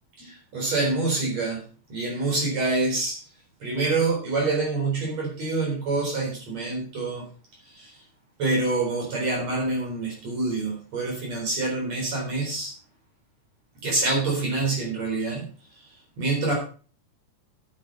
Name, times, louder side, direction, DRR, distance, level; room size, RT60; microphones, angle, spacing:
voice 1, 0.2-1.6 1.9-3.2 3.6-7.3 7.7-8.0 8.4-12.7 13.8-15.5 16.2-16.6, right 3 dB, 60° right, -1 dB, 5.2 m, -26 dB
9.7 x 9.5 x 5.3 m, 0.39 s
omnidirectional pair, 3.5 m